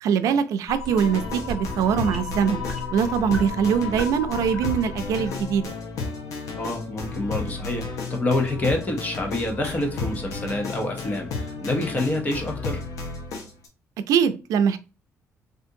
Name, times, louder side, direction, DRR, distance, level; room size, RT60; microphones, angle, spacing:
voice 1, 0.0-2.6 2.9-5.6 14.1-14.8, right 7 dB, 90° right, 0.4 m, -22 dB
sound 1, 0.7-5.7, left 3 dB, 10° left, 1.1 m, -35 dB
sound 2, 0.9-13.7, left 4 dB, 80° left, 0.9 m, -33 dB
voice 2, 6.6-12.8, left 2 dB, 30° left, 0.8 m, -27 dB
3.5 x 2.5 x 2.7 m
cardioid pair, 150°, 6 cm